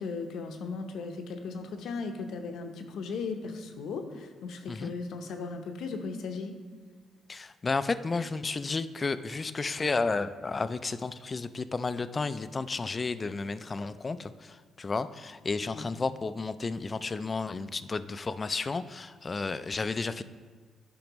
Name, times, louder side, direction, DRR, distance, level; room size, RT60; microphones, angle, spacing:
voice 1, 0.0-6.6 15.7-15.9, left 4 dB, 75° left, 5 dB, 0.7 m, -37 dB
voice 2, 7.3-20.2, left 4 dB, 30° left, 13 dB, 0.3 m, -32 dB
10.5 x 5.1 x 3.0 m, 1.5 s
cardioid pair, 90°, 0 cm